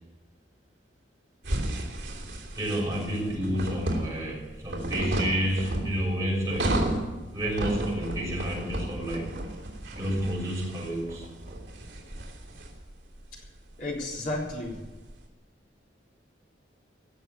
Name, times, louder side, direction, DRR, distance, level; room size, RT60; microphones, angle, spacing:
toilet paper roll, 1.4-15.2, right 1 dB, 75° right, 3.2 m, -34 dB
voice 1, 2.5-7.0 7.3-9.4 9.9-11.3, equal, 20° right, -4 dB, 6.4 m, -30 dB
Knock, 7.4-8.2 8.6-9.4 9.9-10.5 11.0-11.8, right 1 dB, 40° right, 3.1 m, -48 dB
voice 2, 13.8-14.8, left 2 dB, 45° left, -3 dB, 3.9 m, -33 dB
16.5 x 7.1 x 9.9 m, 1.2 s
head